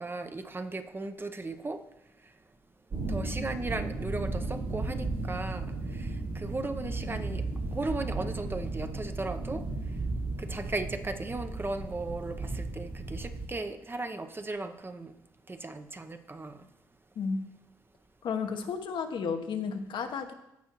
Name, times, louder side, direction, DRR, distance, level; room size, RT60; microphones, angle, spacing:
voice 1, 0.0-1.8 3.1-7.4 7.7-9.6 10.4-15.1 15.5-16.7, right 2 dB, 25° right, 0.8 m, -36 dB
sound 1, 2.9-13.5, right 2 dB, 55° right, 2.2 m, -35 dB
voice 2, 18.2-20.3, left 6 dB, 60° left, 1.0 m, -32 dB
15.5 x 5.5 x 3.0 m
hypercardioid pair, 50°, 9 cm